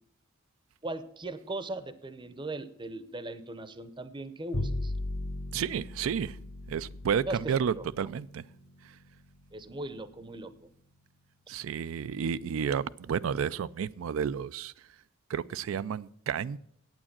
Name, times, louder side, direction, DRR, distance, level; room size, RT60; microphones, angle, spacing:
voice 1, 0.8-4.9 7.3-7.9 9.5-10.7, right 2 dB, 25° right, 13 dB, 0.6 m, -39 dB
Bowed string instrument, 4.5-11.0, left 1 dB, 55° left, 1.1 m, -39 dB
voice 2, 5.5-6.4 6.7-8.4 11.5-14.7 15.3-16.6, right 7 dB, 85° right, 16 dB, 0.4 m, -31 dB
8.9 x 8.6 x 7.2 m, 0.72 s
head